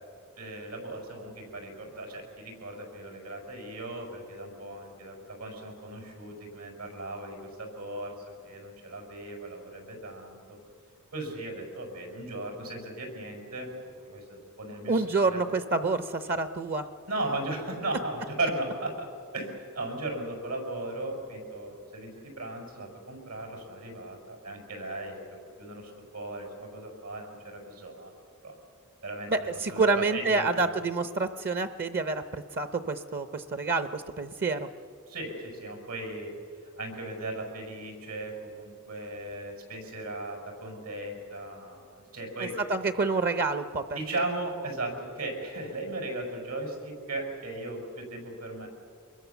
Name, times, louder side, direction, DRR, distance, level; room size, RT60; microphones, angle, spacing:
voice 1, 0.4-8.1 8.4-10.6 11.1-13.7 14.0-15.4 17.1-19.1 19.3-25.2 25.6-28.1 28.4-28.5 29.0-30.7 35.1-36.3 36.8-42.5 43.9-48.7, right 2 dB, 85° right, 2 dB, 5.8 m, -37 dB
voice 2, 14.9-16.9 29.3-34.7 42.7-44.0, right 3 dB, 45° right, 10 dB, 0.7 m, -28 dB
25.5 x 22.0 x 7.0 m, 2.3 s
head